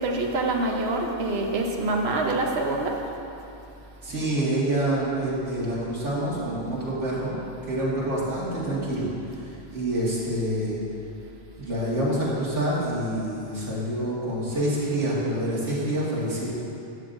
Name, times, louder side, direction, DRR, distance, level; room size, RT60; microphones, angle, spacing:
voice 1, 0.0-3.0, right 2 dB, 60° right, 1 dB, 1.1 m, -25 dB
voice 2, 4.0-7.3 7.7-9.2 9.7-10.8 11.6-16.5, right 1 dB, 80° right, -8 dB, 2.2 m, -27 dB
12.0 x 7.9 x 2.6 m, 2.8 s
omnidirectional pair, 1.2 m